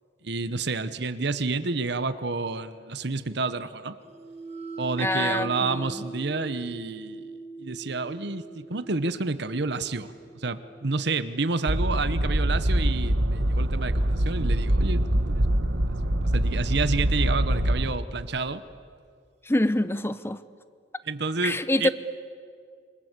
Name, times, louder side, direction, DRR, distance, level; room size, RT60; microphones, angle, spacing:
voice 1, 0.2-4.0 4.8-7.3 7.6-15.9 16.3-18.6 21.1-21.9, right 3 dB, 60° right, 12 dB, 1.0 m, -30 dB
sound 1, 4.0-14.0, right 3 dB, 35° right, 2.0 m, -42 dB
voice 2, 5.0-5.9 19.4-20.4 21.4-21.9, left 1 dB, 15° left, 14 dB, 0.8 m, -25 dB
sound 2, 11.7-17.9, right 1 dB, 90° right, 1.6 m, -24 dB
27.5 x 25.5 x 8.2 m, 2.2 s
head